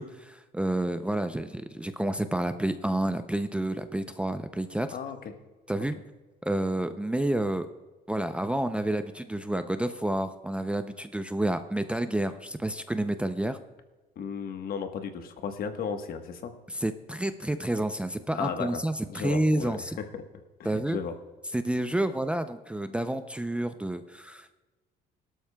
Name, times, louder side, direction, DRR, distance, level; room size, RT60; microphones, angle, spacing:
voice 1, 0.0-4.9 5.7-6.0 6.4-7.7 8.1-13.6 16.7-20.0 20.6-21.0 21.5-24.6, right 1 dB, 5° right, 9 dB, 0.5 m, -29 dB
voice 2, 14.2-16.5 18.3-18.8 19.1-20.2 20.6-21.2, left 6 dB, 60° left, 7 dB, 1.3 m, -35 dB
18.0 x 12.5 x 2.3 m, 1.2 s
cardioid pair, 110°, 17 cm